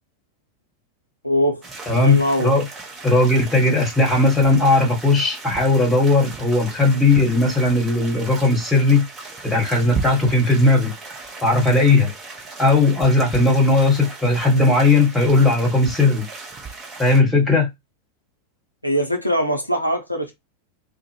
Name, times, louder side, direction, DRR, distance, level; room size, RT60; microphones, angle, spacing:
voice 1, 1.2-1.6 1.9-2.6 18.8-20.3, equal, 90° left, 0.5 m, -22 dB
sound 1, 1.6-17.2, right 4 dB, 20° right, 0.8 m, -36 dB
voice 2, 1.9-2.6 3.0-9.0 9.4-10.9 11.4-12.1 12.6-16.2 17.0-17.7, left 2 dB, 5° left, 1.3 m, -17 dB
2.4 x 2.0 x 3.0 m
figure-of-eight pair, 90°, 0 cm